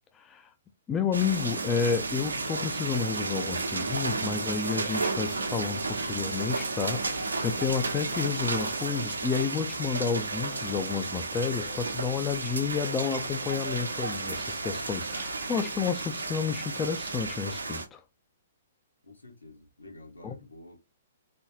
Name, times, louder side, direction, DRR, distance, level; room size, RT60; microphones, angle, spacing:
voice 1, 0.1-0.5 0.9-18.0 20.2-20.4, left 6 dB, 20° left, 0.5 m, -31 dB
sound 1, 1.1-17.9, right 3 dB, 75° right, 1.1 m, -32 dB
voice 2, 19.0-20.8, left 2 dB, 80° left, 2.0 m, -49 dB
4.3 x 3.5 x 3.0 m
figure-of-eight pair, 120°, 0 cm